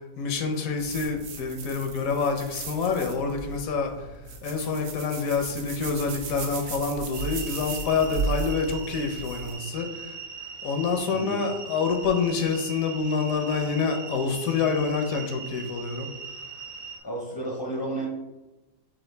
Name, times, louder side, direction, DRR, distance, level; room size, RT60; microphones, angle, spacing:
voice 1, 0.2-3.9 4.4-10.2 10.6-16.1, left 5 dB, 85° left, 4 dB, 1.1 m, -27 dB
sound 1, 0.8-9.5, right 4 dB, 70° right, 1.1 m, -36 dB
sound 2, 7.1-17.0, right 5 dB, 85° right, 0.4 m, -40 dB
voice 2, 11.1-11.4 17.0-18.1, right 1 dB, 30° left, -3 dB, 0.4 m, -32 dB
6.1 x 2.5 x 3.2 m, 1.0 s
omnidirectional pair, 1.4 m